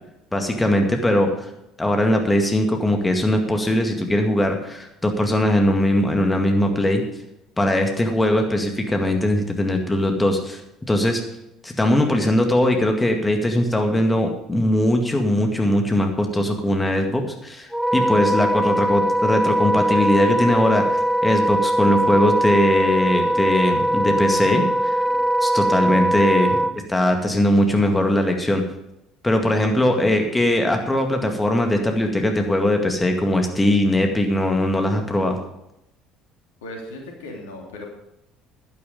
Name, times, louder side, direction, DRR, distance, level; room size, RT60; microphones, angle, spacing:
voice 1, 0.3-1.5 1.8-7.0 7.6-10.6 10.9-11.2 11.6-17.7 17.9-25.0 25.4-28.6 29.2-35.4, left 1 dB, 15° left, 4 dB, 2.1 m, -20 dB
Wind instrument woodwind instrument, 17.7-26.7, right 1 dB, ahead, 0.6 m, -21 dB
voice 2, 23.9-24.2 25.0-25.3 26.6-26.8 29.9-30.3 36.6-37.9, left 1 dB, 75° left, 0 dB, 3.0 m, -39 dB
11.0 x 11.0 x 5.2 m, 0.84 s
figure-of-eight pair, 60°, 0 cm